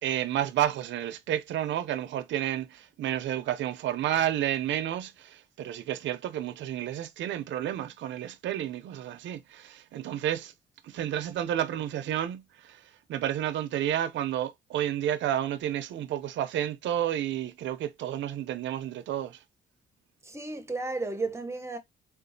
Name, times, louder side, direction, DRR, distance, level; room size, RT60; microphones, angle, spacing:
voice 1, 0.0-10.5 10.8-12.8 13.1-19.4, right 11 dB, 70° right, 0.5 m, -31 dB
voice 2, 20.2-21.8, right 3 dB, 15° right, 0.8 m, -33 dB
3.7 x 2.4 x 2.6 m
cardioid pair, 90°, 20 cm